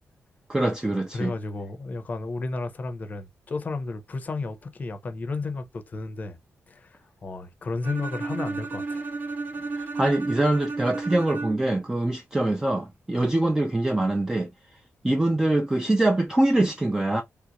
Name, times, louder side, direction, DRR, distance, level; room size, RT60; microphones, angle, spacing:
voice 1, 0.5-1.3 10.0-14.5 15.0-17.2, right 1 dB, 10° right, 0.3 m, -23 dB
voice 2, 1.1-6.4 6.7-9.1, left 3 dB, 35° left, 0.6 m, -33 dB
Bowed string instrument, 7.8-11.8, right 3 dB, 45° right, 0.7 m, -32 dB
3.3 x 2.5 x 2.8 m
wide cardioid pair, 160°, 5 cm